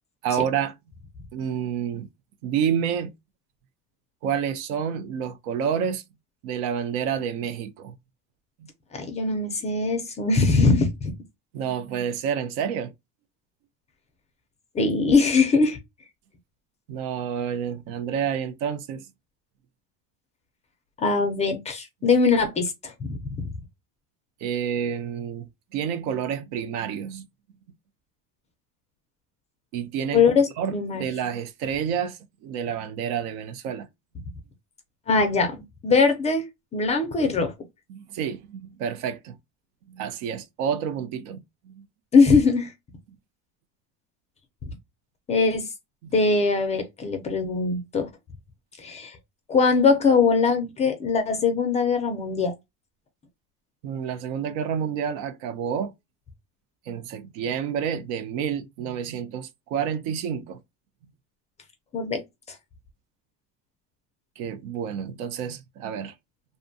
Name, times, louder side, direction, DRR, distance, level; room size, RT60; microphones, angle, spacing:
voice 1, 0.2-0.7 1.3-2.1 2.4-3.1 4.2-6.0 6.4-7.9 11.5-12.9 16.9-19.1 24.4-27.3 29.7-30.2 30.6-33.9 37.9-39.4 39.9-41.8 46.0-46.1 53.8-55.9 56.9-60.6 64.4-66.1, right 8 dB, 70° right, 0.6 m, -29 dB
voice 2, 8.9-10.9 14.7-15.8 21.0-22.9 23.3-23.4 30.1-31.0 35.1-37.5 42.1-42.7 45.3-45.7 46.1-48.1 48.8-49.2 49.5-52.5 61.9-62.2, left 4 dB, 20° left, 0.4 m, -21 dB
2.6 x 2.2 x 2.5 m
cardioid pair, 145°, 36 cm